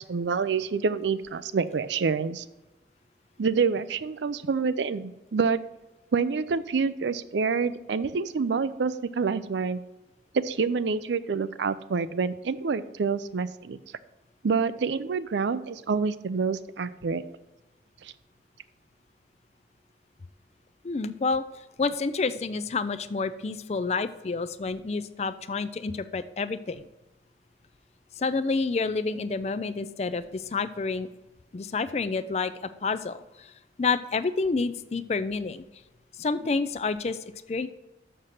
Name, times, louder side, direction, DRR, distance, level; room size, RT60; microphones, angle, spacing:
voice 1, 0.0-2.4 3.4-5.6 6.1-9.8 10.3-13.8 14.4-17.2 18.0-18.1, right 5 dB, 80° right, 14 dB, 0.5 m, -27 dB
voice 2, 20.8-21.4 21.8-26.9 28.2-31.1 31.5-32.5 32.8-33.5 33.8-35.6 36.2-37.2 37.5-37.7, left 4 dB, 35° left, 13 dB, 0.4 m, -29 dB
6.6 x 6.4 x 5.8 m, 1.0 s
head